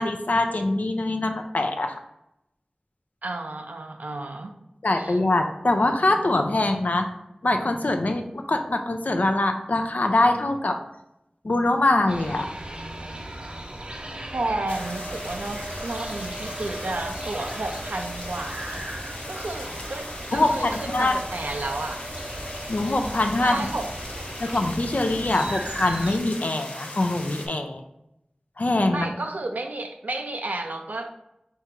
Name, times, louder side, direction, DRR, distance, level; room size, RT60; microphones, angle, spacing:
voice 1, 0.0-2.0 4.8-7.1 7.4-10.8 11.4-12.5 20.3-21.1 22.7-23.7 24.4-27.8 28.6-29.1, left 2 dB, 70° left, 5 dB, 0.5 m, -23 dB
voice 2, 3.2-4.5 5.0-5.2 14.3-18.8 19.3-22.0 23.4-23.9 28.9-31.1, right 2 dB, 85° right, 4 dB, 0.4 m, -32 dB
sound 1, 12.1-26.2, right 1 dB, 40° right, 0.5 m, -36 dB
sound 2, 14.7-27.5, left 1 dB, 50° left, 0.8 m, -39 dB
3.6 x 2.8 x 4.4 m, 0.84 s
wide cardioid pair, 50°, 3 cm